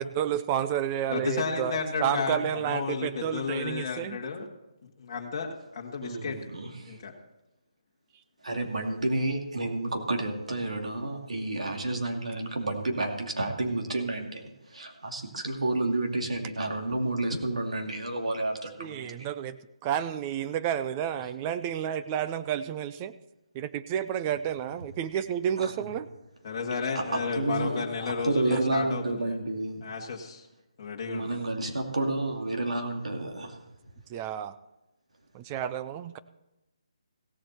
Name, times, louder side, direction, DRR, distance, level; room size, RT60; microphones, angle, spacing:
voice 1, 0.0-4.2 18.8-23.1 23.5-26.1 27.4-27.5 28.5-28.6 34.1-34.6 35.3-36.2, right 9 dB, 15° right, 13 dB, 0.3 m, -31 dB
voice 2, 1.1-4.5 4.8-6.4 6.9-7.1 26.4-29.4 29.8-30.4 30.8-31.4, left 5 dB, 30° left, -2 dB, 1.6 m, -33 dB
voice 3, 6.0-7.0 8.4-19.1 25.6-25.7 26.9-29.8 31.1-33.6, right 2 dB, 80° right, 2 dB, 2.4 m, -30 dB
17.0 x 7.6 x 4.1 m, 0.95 s
hypercardioid pair, 170°, 3 cm